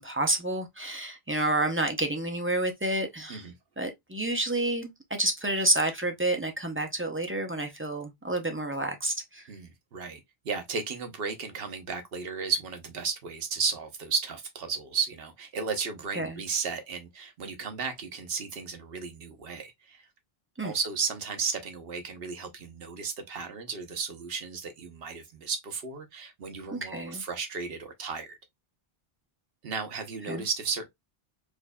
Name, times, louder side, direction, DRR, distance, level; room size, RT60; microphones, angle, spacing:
voice 1, 0.0-3.4 3.8-4.9 5.2-9.4 16.1-16.4 20.6-20.7 26.7-27.2 30.3-30.4, right 1 dB, 15° right, 0.5 m, -29 dB
voice 2, 9.5-10.2 10.4-20.0 20.6-28.4 29.6-30.9, right 5 dB, 70° right, 1.0 m, -34 dB
4.7 x 2.5 x 2.2 m
omnidirectional pair, 1.0 m